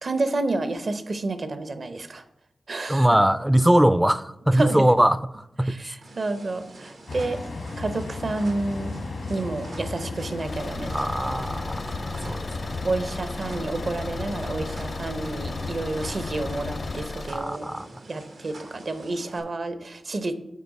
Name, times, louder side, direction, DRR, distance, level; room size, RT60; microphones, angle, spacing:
voice 1, 0.0-2.2 2.7-3.1 4.5-4.9 5.6-7.4 7.8-9.0 9.3-11.0 12.2-12.4 12.8-17.7 18.1-20.3, right 2 dB, 60° right, 0.7 m, -29 dB
voice 2, 2.9-5.9 10.9-12.8 17.3-17.9, right 1 dB, 10° right, 0.3 m, -22 dB
sound 1, 6.0-19.4, right 2 dB, 90° right, 1.1 m, -46 dB
sound 2, 7.1-17.0, left 3 dB, 80° left, 1.2 m, -35 dB
Car / Engine, 10.4-17.4, left 2 dB, 60° left, 0.6 m, -37 dB
8.4 x 4.5 x 4.1 m
cardioid pair, 45°, 0 cm